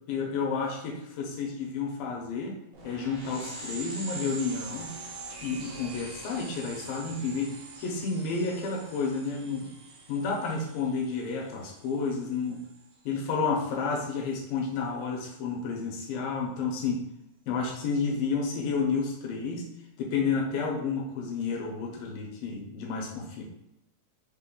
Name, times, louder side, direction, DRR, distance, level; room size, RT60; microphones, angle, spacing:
voice 1, 0.1-2.6 2.8-4.9 5.4-9.7 10.1-12.6 13.0-17.0 17.5-19.7 20.0-23.4, left 5 dB, 80° left, 0 dB, 2.4 m, -31 dB
sound 1, 2.7-12.9, right 3 dB, 80° right, 1.5 m, -44 dB
5.7 x 2.1 x 3.6 m, 0.84 s
omnidirectional pair, 4.3 m